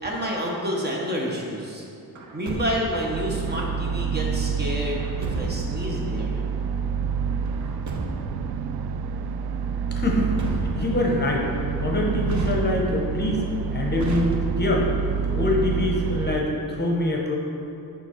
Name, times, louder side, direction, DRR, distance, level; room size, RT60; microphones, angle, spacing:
voice 1, 0.0-1.8 2.3-6.4, equal, 25° right, -2 dB, 1.1 m, -29 dB
Truck, 2.1-3.1 4.9-5.8 7.5-8.4 10.0-11.1 12.2-13.1 14.0-14.8, right 2 dB, 50° right, 0.9 m, -33 dB
sound 1, 3.1-16.4, right 6 dB, 85° right, 0.5 m, -28 dB
voice 2, 9.9-11.5 11.8-13.4 13.7-14.9 15.3-17.3, left 2 dB, 25° left, -1 dB, 0.9 m, -24 dB
6.8 x 5.4 x 4.5 m, 2.7 s
wide cardioid pair, 140°, 37 cm